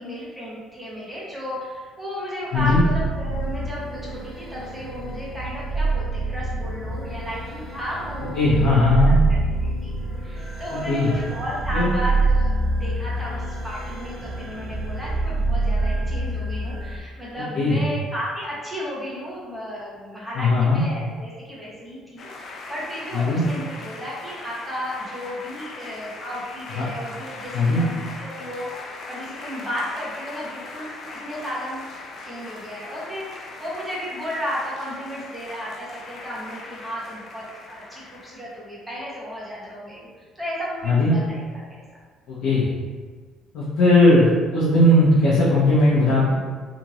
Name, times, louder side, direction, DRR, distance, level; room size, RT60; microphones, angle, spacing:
voice 1, 0.0-8.8 9.1-31.9 32.2-41.6, equal, 5° right, -7 dB, 0.8 m, -34 dB
sound 1, 2.5-17.0, right 2 dB, 30° right, 0.5 m, -26 dB
voice 2, 8.4-9.1 10.7-11.1 11.7-11.9 17.5-17.8 20.3-20.8 23.1-23.4 26.7-26.9 27.5-27.8 40.8-41.1 42.3-42.7 43.5-46.3, left 2 dB, 75° left, -9 dB, 0.7 m, -18 dB
sound 2, 22.2-38.6, left 3 dB, 45° left, 0.4 m, -39 dB
2.9 x 2.5 x 2.9 m, 1.5 s
cardioid pair, 150°, 0 cm